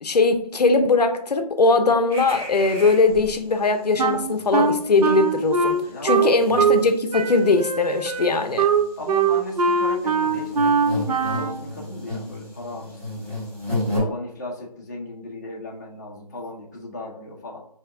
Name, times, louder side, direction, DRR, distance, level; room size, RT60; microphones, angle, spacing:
voice 1, 0.0-8.7, left 3 dB, 80° left, 0.6 m, -20 dB
sound 1, 2.1-3.7 4.1-4.2 4.5-14.0, left 1 dB, 20° right, 1.6 m, -34 dB
voice 2, 3.9-4.5 5.9-6.3 9.0-13.4 13.9-17.6, left 2 dB, 25° left, 0.6 m, -37 dB
Wind instrument woodwind instrument, 4.0-6.9 7.1-11.6, right 5 dB, 65° right, 0.5 m, -22 dB
3.3 x 2.8 x 3.8 m
figure-of-eight pair, 170°, 21 cm